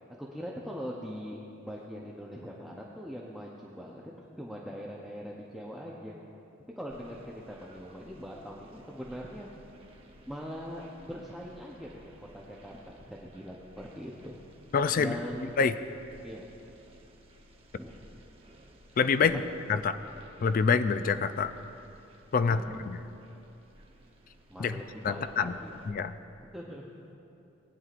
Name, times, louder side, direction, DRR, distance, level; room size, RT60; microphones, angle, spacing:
voice 1, 0.2-4.0 4.3-6.1 6.8-9.5 10.3-14.3 15.0-15.5 16.2-16.5 17.7-17.9 19.2-19.4 22.5-22.9 24.5-25.8 26.5-26.9, equal, ahead, -4 dB, 0.7 m, -41 dB
sound 1, 6.9-25.9, equal, 30° right, 0.9 m, -56 dB
voice 2, 14.7-15.2 15.6-15.7 19.0-19.4 19.7-20.0 20.4-21.5 22.3-23.0 24.6-25.5 25.9-26.1, left 5 dB, 45° left, 11 dB, 0.3 m, -26 dB
19.5 x 9.3 x 2.5 m, 2.8 s
head